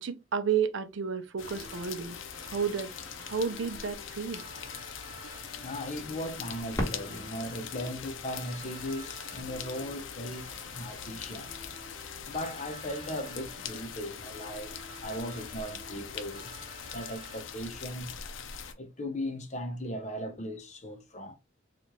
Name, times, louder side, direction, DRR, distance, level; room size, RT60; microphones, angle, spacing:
voice 1, 0.0-2.2 2.4-2.9 3.2-4.4, right 6 dB, 70° right, 0.5 m, -31 dB
sound 1, 1.4-18.7, left 7 dB, 80° left, 0.6 m, -42 dB
sound 2, 1.4-17.4, right 2 dB, 20° right, 1.4 m, -51 dB
voice 2, 5.6-11.6 12.3-16.5 16.9-18.2 18.8-21.3, equal, 35° left, 0.8 m, -38 dB
Fireworks, 6.7-9.5 10.2-10.3 11.0-11.4 13.3-13.4, equal, 15° left, 1.2 m, -39 dB
4.1 x 2.5 x 3.0 m
head